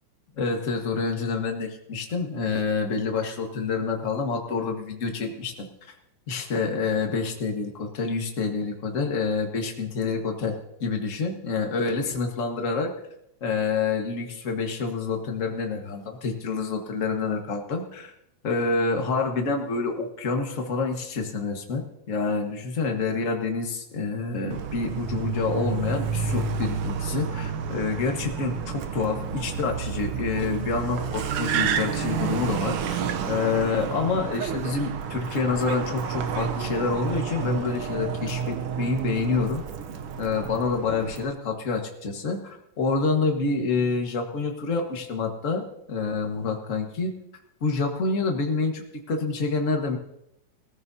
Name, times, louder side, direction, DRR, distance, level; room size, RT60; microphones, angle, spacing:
voice 1, 0.4-5.9 6.3-12.9 13.4-18.1 18.4-39.6 40.2-47.1 47.6-48.8 49.1-50.0, left 4 dB, 35° left, 3 dB, 1.2 m, -27 dB
Car, 24.5-41.3, right 7 dB, 70° right, 1.3 m, -30 dB
20.5 x 14.0 x 2.8 m, 0.79 s
omnidirectional pair, 3.5 m